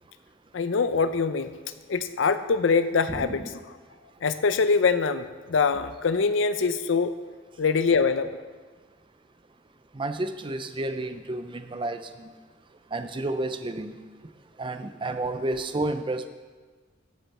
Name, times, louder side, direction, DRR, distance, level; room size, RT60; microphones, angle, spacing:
voice 1, 0.5-1.5 1.9-3.4 4.2-7.1 7.6-8.4, left 5 dB, 65° left, 11 dB, 0.5 m, -23 dB
voice 2, 3.1-3.5 9.9-12.3 12.9-14.0 14.6-16.3, right 2 dB, 25° right, 9 dB, 0.5 m, -31 dB
14.0 x 7.0 x 4.2 m, 1.4 s
head